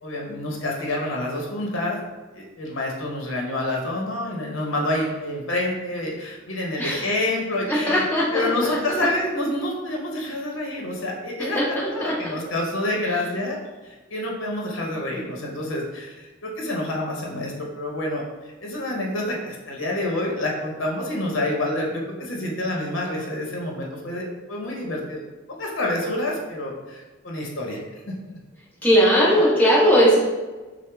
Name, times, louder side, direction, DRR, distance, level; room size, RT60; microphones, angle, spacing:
voice 1, 0.0-2.0 2.3-8.0 8.3-13.6 13.8-16.1 16.4-18.2 18.6-25.2 25.6-27.8, left 1 dB, 70° left, -1 dB, 0.9 m, -28 dB
voice 2, 6.8-7.1 7.7-9.1 11.5-12.1 13.1-13.2 28.8-30.2, equal, 10° left, -8 dB, 1.3 m, -19 dB
6.0 x 2.2 x 3.5 m, 1.2 s
head